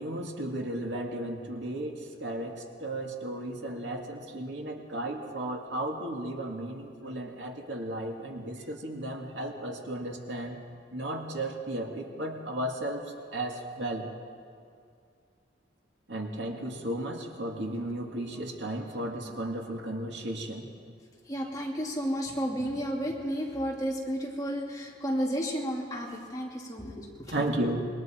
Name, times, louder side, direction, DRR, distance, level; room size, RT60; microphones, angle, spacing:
voice 1, 0.0-10.6 10.9-14.1 16.1-20.7 27.3-27.9, right 1 dB, 70° right, 1 dB, 2.4 m, -34 dB
voice 2, 21.3-27.3, equal, 20° left, -3 dB, 2.8 m, -32 dB
27.0 x 22.5 x 4.6 m, 2.3 s
head